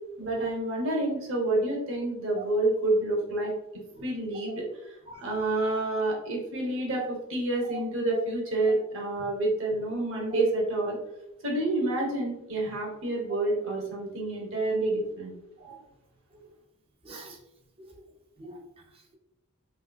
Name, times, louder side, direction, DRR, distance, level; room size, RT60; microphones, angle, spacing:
voice 1, 0.2-3.5 4.0-7.0 7.3-11.0 11.4-15.3, right 2 dB, 60° right, -2 dB, 0.8 m, -28 dB
voice 2, 17.0-17.4 17.8-18.0 18.4-18.8, right 4 dB, 25° right, 1 dB, 0.4 m, -43 dB
3.2 x 2.4 x 2.2 m, 0.87 s
head